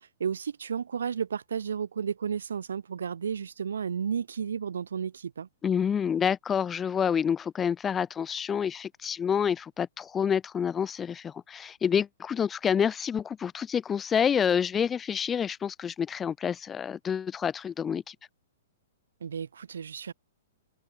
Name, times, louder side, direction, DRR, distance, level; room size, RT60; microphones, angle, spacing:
voice 1, 0.0-5.5 19.2-20.1, right 7 dB, 80° right, 0.6 m, -33 dB
voice 2, 5.6-18.1, left 7 dB, 20° left, 0.5 m, -28 dB
hypercardioid pair, 125°, 0 cm